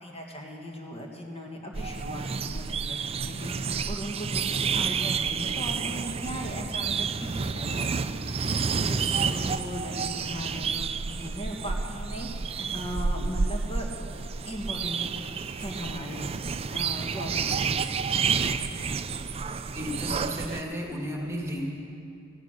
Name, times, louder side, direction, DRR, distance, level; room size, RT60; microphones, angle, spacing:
voice 1, 0.0-13.9 14.5-15.0 15.4-16.3 16.7-18.0, equal, 30° left, -1 dB, 1.7 m, -38 dB
sound 1, 1.7-20.6, right 5 dB, 30° right, 0.4 m, -30 dB
voice 2, 19.8-21.7, equal, 15° right, -1 dB, 1.8 m, -33 dB
15.0 x 12.0 x 6.5 m, 2.6 s
head